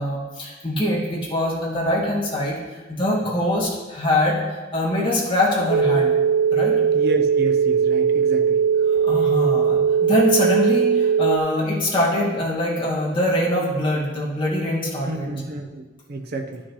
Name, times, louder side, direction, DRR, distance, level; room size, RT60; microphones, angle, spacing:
voice 1, 0.0-6.1 6.5-6.8 8.8-15.3, left 1 dB, 25° left, -5 dB, 2.0 m, -23 dB
sound 1, 5.7-11.4, right 7 dB, 80° right, 0.3 m, -19 dB
voice 2, 6.9-8.6 15.1-16.6, right 1 dB, 55° right, 5 dB, 0.8 m, -30 dB
11.5 x 6.3 x 3.2 m, 1.3 s
head